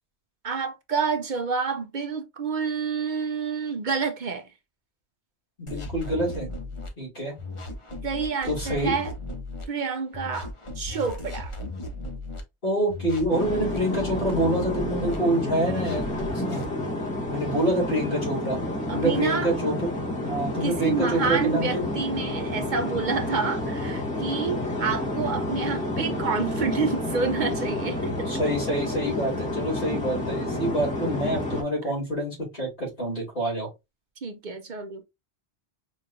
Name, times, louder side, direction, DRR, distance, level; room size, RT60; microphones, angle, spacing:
voice 1, 0.4-4.5 8.0-9.1 9.7-10.5 10.8-11.5 18.9-19.5 20.6-28.3 34.2-35.0, right 5 dB, 50° right, 0.7 m, -28 dB
voice 2, 5.6-6.5 7.0-7.3 8.4-8.9 12.6-16.6 17.3-18.6 18.9-19.9 20.2-21.9 28.3-33.7, right 1 dB, 55° left, 3.0 m, -27 dB
sound 1, 5.7-6.9 7.4-9.6 10.1-12.4 12.9-15.2 15.7-16.7, left 1 dB, 30° left, 0.8 m, -36 dB
sound 2, 13.3-31.6, left 1 dB, 5° left, 1.4 m, -30 dB
5.1 x 3.1 x 2.5 m
omnidirectional pair, 1.1 m